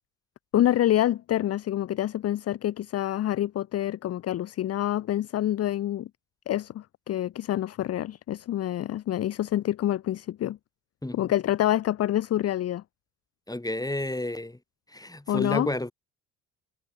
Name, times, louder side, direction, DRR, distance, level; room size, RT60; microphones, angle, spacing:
voice 1, 0.5-6.1 6.5-10.6 11.1-12.8 15.3-15.7, left 12 dB, 35° left, 0.6 m, -27 dB
voice 2, 13.5-14.6 14.9-15.9, left 1 dB, 10° left, 3.9 m, -31 dB
figure-of-eight pair, 50°, 46 cm